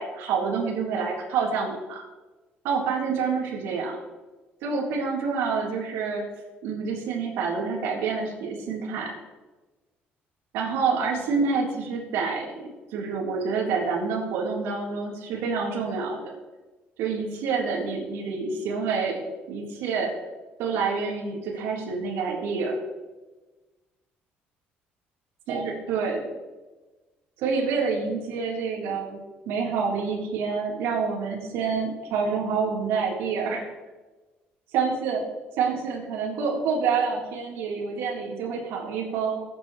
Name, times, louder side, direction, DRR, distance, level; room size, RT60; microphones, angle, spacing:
voice 1, 0.0-2.0 2.6-4.0 4.6-6.2 6.6-9.1 10.5-12.5 12.9-16.3 17.0-19.2 19.5-20.1 20.6-22.8 25.5-26.2 27.4-29.2 29.5-33.7 34.7-35.2 35.6-39.4, right 5 dB, 85° right, -3 dB, 3.7 m, -27 dB
21.5 x 9.8 x 3.2 m, 1.2 s
cardioid pair, 105°, 4 cm